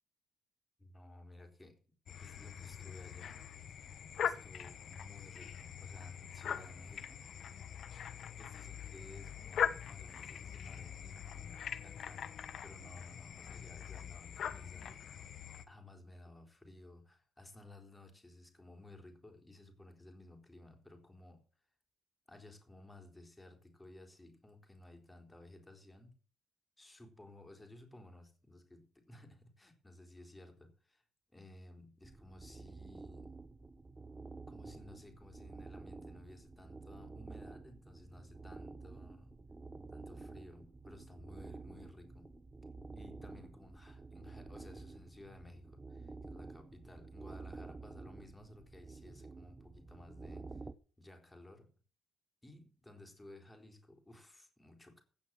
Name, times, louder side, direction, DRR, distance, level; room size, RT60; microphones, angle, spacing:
voice 1, 0.8-1.8 2.2-3.4 4.2-7.3 8.4-12.3 12.6-15.3 15.7-21.4 22.3-26.2 26.8-30.7 31.3-33.3 34.5-39.3 39.9-42.3 42.9-50.6 51.0-51.7 52.4-55.0, left 1 dB, 15° left, 4.1 m, -56 dB
sound 1, 2.1-15.6, left 8 dB, 60° left, 1.2 m, -42 dB
sound 2, 32.0-50.7, right 3 dB, 20° right, 0.9 m, -50 dB
16.5 x 5.8 x 7.6 m
cardioid pair, 90°, 0 cm